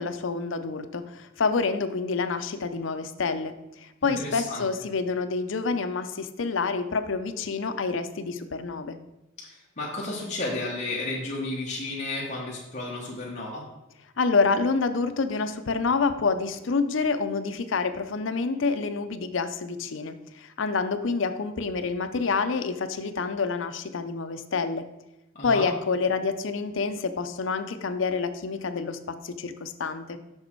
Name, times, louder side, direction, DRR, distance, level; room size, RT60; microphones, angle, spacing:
voice 1, 0.0-9.0 14.2-24.8 25.4-30.2, left 4 dB, 65° left, 10 dB, 0.6 m, -28 dB
voice 2, 4.0-4.6 9.4-13.6 25.3-25.7, left 2 dB, 35° left, -5 dB, 1.2 m, -33 dB
6.5 x 6.1 x 4.5 m, 0.96 s
head